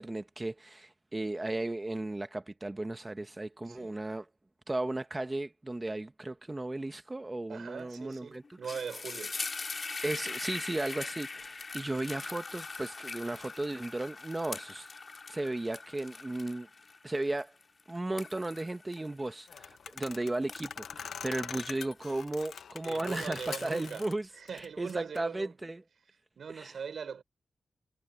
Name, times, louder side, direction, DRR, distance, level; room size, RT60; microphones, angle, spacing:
voice 1, 0.0-4.3 4.7-8.6 10.0-14.9 15.3-16.7 17.0-17.5 17.9-25.8 26.5-26.8, right 2 dB, 20° right, 1.1 m, -35 dB
voice 2, 7.5-9.4 22.8-24.1 24.3-25.5 26.4-27.2, right 6 dB, 75° right, 4.7 m, -41 dB
sound 1, 7.9-8.2 8.4-20.0 20.3-22.3, left 4 dB, 45° left, 4.1 m, -42 dB
sound 2, 19.5-24.1 24.5-25.2, left 7 dB, 90° left, 1.0 m, -43 dB
cardioid pair, 75°, 0 cm